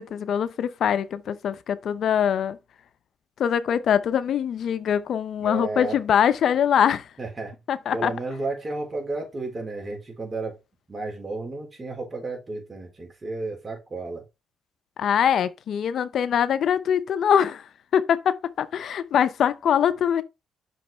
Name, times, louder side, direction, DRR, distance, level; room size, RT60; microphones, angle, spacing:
voice 1, 0.0-2.6 3.4-7.1 7.7-8.1 15.0-20.2, left 8 dB, 65° left, 0.6 m, -23 dB
voice 2, 5.4-6.0 7.2-7.5 7.9-10.6 10.9-14.2, right 3 dB, 30° right, 4.1 m, -32 dB
6.2 x 5.4 x 4.4 m
cardioid pair, 90°, 0 cm